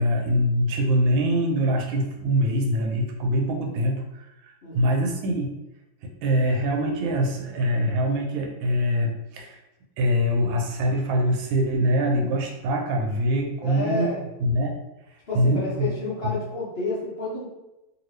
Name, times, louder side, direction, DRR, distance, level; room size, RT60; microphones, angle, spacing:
voice 1, 0.0-5.5 6.0-9.6 10.0-14.1 14.4-14.7 15.3-16.0 16.2-16.4, equal, 80° right, 2 dB, 1.4 m, -24 dB
voice 2, 4.6-4.9 13.6-14.2 15.3-17.5, left 2 dB, 55° left, -9 dB, 0.6 m, -30 dB
2.8 x 2.8 x 3.1 m, 0.96 s
omnidirectional pair, 2.1 m